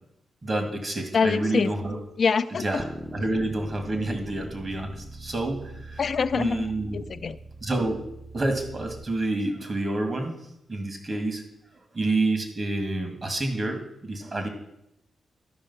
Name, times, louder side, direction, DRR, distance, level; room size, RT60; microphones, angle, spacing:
voice 1, 0.4-2.0 2.6-2.8 3.1-6.0 6.3-7.0 7.6-8.0 8.3-10.4 10.7-11.4 11.9-14.5, right 2 dB, 45° right, 5 dB, 2.1 m, -28 dB
voice 2, 1.1-1.7 2.2-2.8 6.0-7.4, left 5 dB, 60° left, 13 dB, 0.4 m, -25 dB
sound 1, 2.8-9.1, right 2 dB, 15° right, 0.8 m, -42 dB
12.0 x 5.4 x 5.6 m, 0.81 s
cardioid pair, 55°, 0 cm